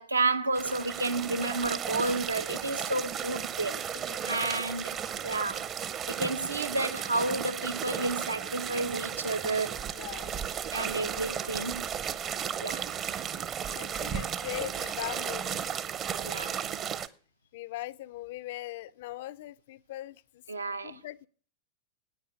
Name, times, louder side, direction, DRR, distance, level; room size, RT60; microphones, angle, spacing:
voice 1, 0.0-3.8 4.2-5.0 5.2-5.7 6.1-9.8 10.7-11.9 12.6-12.9 16.2-16.6 20.5-21.0, right 2 dB, 80° right, 0.7 m, -31 dB
sound 1, 0.6-17.1, right 8 dB, 30° right, 0.7 m, -35 dB
voice 2, 3.6-4.6 9.9-10.6 13.7-15.6 17.5-20.4 20.8-21.3, left 15 dB, 55° left, 0.4 m, -41 dB
9.3 x 8.7 x 6.2 m
figure-of-eight pair, 90°, 0 cm